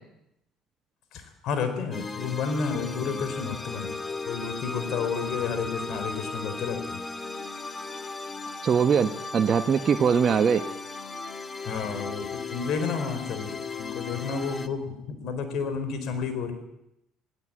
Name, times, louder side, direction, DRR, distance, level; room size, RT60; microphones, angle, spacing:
voice 1, 1.1-3.9 4.2-7.0 11.6-16.5, left 5 dB, 65° left, 9 dB, 4.3 m, -31 dB
sound 1, 1.9-14.7, left 3 dB, 30° left, 1.7 m, -36 dB
voice 2, 8.6-10.6, right 7 dB, 45° right, 6 dB, 1.0 m, -22 dB
18.0 x 17.5 x 8.9 m, 0.86 s
supercardioid pair, 80°, 0 cm